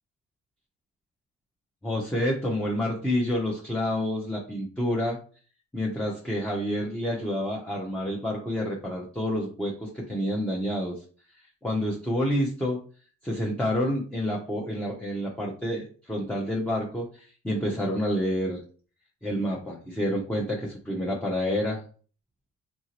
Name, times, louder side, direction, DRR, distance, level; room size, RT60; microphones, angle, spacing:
voice 1, 1.8-5.2 5.7-11.0 11.6-12.8 13.2-18.6 19.2-21.8, equal, 5° left, -3 dB, 0.6 m, -28 dB
2.9 x 2.7 x 2.9 m, 0.41 s
cardioid pair, 90°, 30 cm